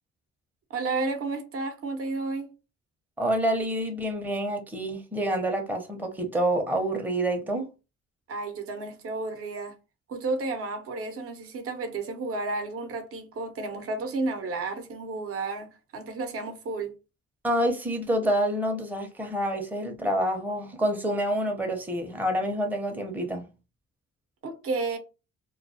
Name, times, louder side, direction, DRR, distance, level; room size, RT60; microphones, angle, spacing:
voice 1, 0.7-2.5 8.3-9.7 10.1-16.9 24.4-25.0, right 3 dB, 50° right, 0.7 m, -32 dB
voice 2, 3.2-7.7 17.4-23.5, right 1 dB, 5° right, 0.6 m, -27 dB
2.3 x 2.2 x 2.6 m
cardioid pair, 90°, 30 cm